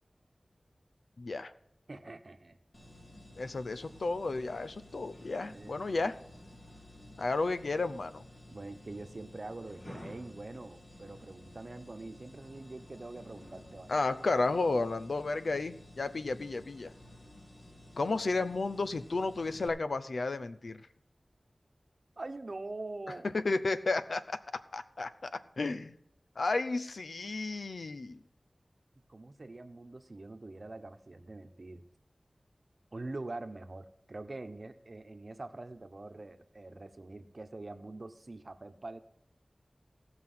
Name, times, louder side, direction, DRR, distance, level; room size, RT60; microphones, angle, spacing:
voice 1, 1.2-1.5 3.4-6.2 7.2-8.2 13.9-16.9 18.0-20.8 23.3-26.0 26.4-28.2, left 3 dB, 85° left, 11 dB, 0.6 m, -33 dB
voice 2, 1.9-2.6 5.4-6.1 8.5-14.0 22.2-23.3 29.1-31.8 32.9-39.0, right 2 dB, 55° right, 8 dB, 1.0 m, -44 dB
sound 1, 2.7-19.7, left 1 dB, 50° left, 3.5 m, -53 dB
17.0 x 6.1 x 5.6 m, 0.78 s
wide cardioid pair, 60°, 0 cm